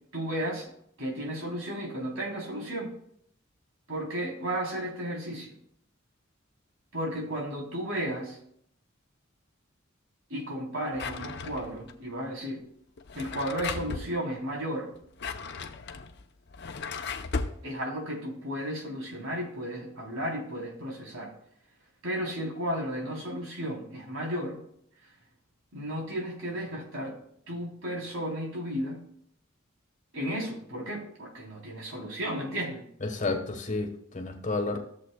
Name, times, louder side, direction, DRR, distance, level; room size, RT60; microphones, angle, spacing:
voice 1, 0.1-0.7 1.0-2.9 3.9-5.6 6.9-8.4 10.3-12.6 13.1-14.9 17.6-21.3 22.0-24.6 25.0-25.1 25.7-27.2 27.5-29.0 30.1-32.8, equal, 85° right, -2 dB, 3.3 m, -34 dB
Drawer open or close, 10.9-11.9 13.0-14.1 14.9-17.6, left 4 dB, 55° left, 0.7 m, -36 dB
voice 2, 33.0-34.8, left 3 dB, 40° left, 5 dB, 1.2 m, -31 dB
14.0 x 7.4 x 2.2 m, 0.69 s
head